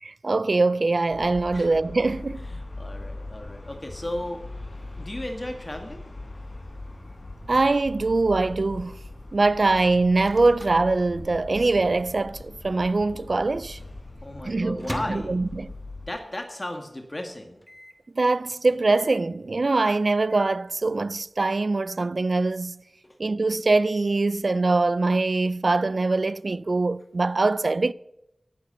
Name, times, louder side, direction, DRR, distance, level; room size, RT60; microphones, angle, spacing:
voice 1, 0.0-2.5 7.5-9.0 9.3-13.8 14.4-15.7 18.1-22.8 23.2-27.9, right 3 dB, 65° right, 0.5 m, -23 dB
sound 1, 1.1-16.1, left 2 dB, 70° left, 5.8 m, -40 dB
voice 2, 2.5-4.4 5.0-6.0 14.2-15.4 16.1-17.6, left 1 dB, 35° left, 2.0 m, -35 dB
Microwave oven, 10.3-11.8 12.1-12.2 12.4-13.0 13.5-16.2 16.6-16.7 16.9-17.0 17.6-18.1 18.9-19.4 20.0-20.7, equal, 10° left, 2.3 m, -41 dB
18.0 x 8.3 x 6.9 m
wide cardioid pair, 50°, 0 cm